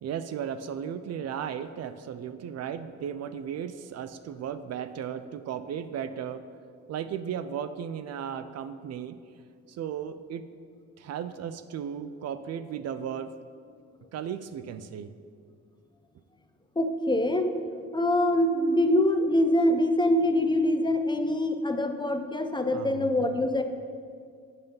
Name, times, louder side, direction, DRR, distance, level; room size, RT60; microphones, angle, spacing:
voice 1, 0.0-6.4 6.9-9.2 9.7-10.5 11.0-13.3 14.1-15.1 22.7-23.5, right 8 dB, 60° right, 11 dB, 0.4 m, -35 dB
voice 2, 16.8-17.5 17.9-23.6, left 1 dB, 15° left, 7 dB, 0.5 m, -24 dB
8.1 x 5.2 x 5.3 m, 2.2 s
cardioid pair, 90°, 30 cm